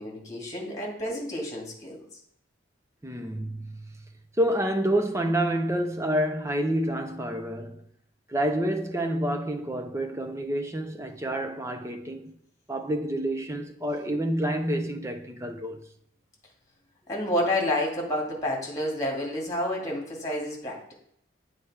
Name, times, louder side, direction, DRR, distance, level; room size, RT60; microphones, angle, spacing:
voice 1, 0.0-2.1 17.1-20.9, left 1 dB, 15° left, 1.9 m, -29 dB
voice 2, 3.0-3.8 4.4-7.8 8.3-12.3 12.7-15.9, right 1 dB, 15° right, 0.5 m, -28 dB
8.6 x 3.3 x 4.7 m
head